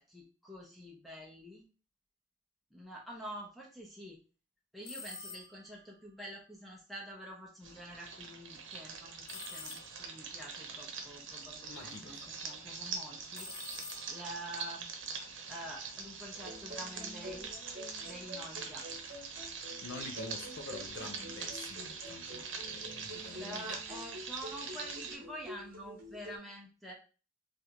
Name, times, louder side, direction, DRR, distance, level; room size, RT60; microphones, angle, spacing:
voice 1, 0.0-1.7 2.7-4.2 4.7-13.5 14.1-14.9 15.5-17.6 18.0-18.9 23.3-26.9, equal, ahead, 0.6 m, -47 dB
sound 1, 4.8-5.7 9.3-10.3 13.3-14.5, left 4 dB, 50° left, 0.7 m, -47 dB
sound 2, 7.6-25.2, right 5 dB, 80° right, 0.7 m, -43 dB
voice 2, 11.7-12.2 19.8-23.8, left 3 dB, 85° left, 0.5 m, -47 dB
sound 3, 16.3-26.4, equal, 50° right, 0.9 m, -49 dB
3.3 x 2.5 x 2.8 m
head